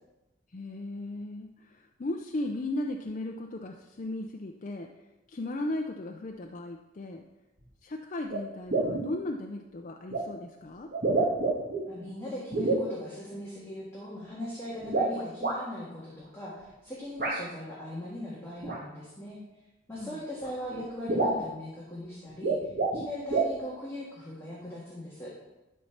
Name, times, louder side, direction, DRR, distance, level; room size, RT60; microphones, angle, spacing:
voice 1, 0.5-4.9 5.3-7.2 7.8-10.9 20.0-20.2, left 1 dB, 40° left, 3 dB, 0.5 m, -36 dB
sound 1, 7.6-7.7 8.3-8.4 8.7-9.1 10.1-10.2 10.9-11.8 12.5-12.9 14.8-15.6 17.2-17.4 18.6-18.8 20.0-20.1 20.4-20.5 20.7-20.8 21.1-21.5 22.3-23.0 23.3-23.5, right 3 dB, 50° right, 1.7 m, -27 dB
voice 2, 11.9-19.4 19.9-25.3, left 1 dB, 15° left, -7 dB, 1.7 m, -39 dB
12.0 x 4.2 x 5.8 m, 1.0 s
head